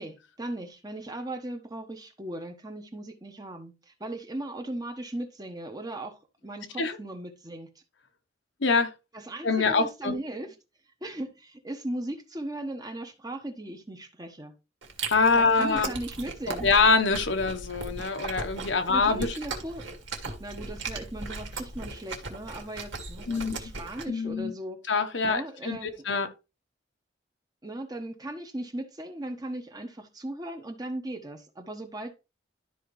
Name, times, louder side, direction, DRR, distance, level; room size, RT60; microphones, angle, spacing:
voice 1, 0.0-7.7 9.1-10.5 11.0-14.5 15.3-16.7 18.9-19.8 20.4-24.8 25.2-26.0 27.6-32.1, right 1 dB, 20° right, 1.2 m, -37 dB
voice 2, 8.6-8.9 9.4-10.1 15.1-15.9 16.6-19.4 23.3-23.6 24.1-24.5 24.9-26.3, left 4 dB, 70° left, 1.1 m, -24 dB
Chewing mastication, 14.8-24.0, right 3 dB, 75° right, 2.0 m, -38 dB
12.5 x 5.0 x 3.2 m
head